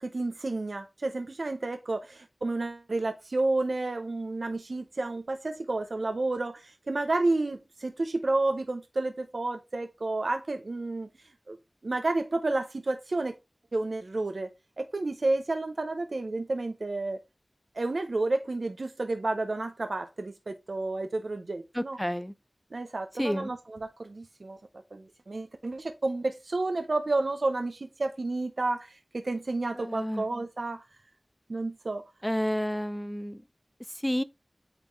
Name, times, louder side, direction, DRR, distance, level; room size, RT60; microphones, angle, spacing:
voice 1, 0.0-11.1 11.5-11.6 11.8-13.3 13.7-14.5 14.8-17.2 17.8-22.0 22.7-24.6 24.9-30.8 31.5-32.0, right 2 dB, 80° right, 0.7 m, -31 dB
voice 2, 21.7-22.3 23.2-23.5 29.8-30.2 32.2-33.4 34.0-34.2, equal, 10° left, 0.6 m, -30 dB
8.8 x 4.2 x 3.1 m
wide cardioid pair, 45°, 0 cm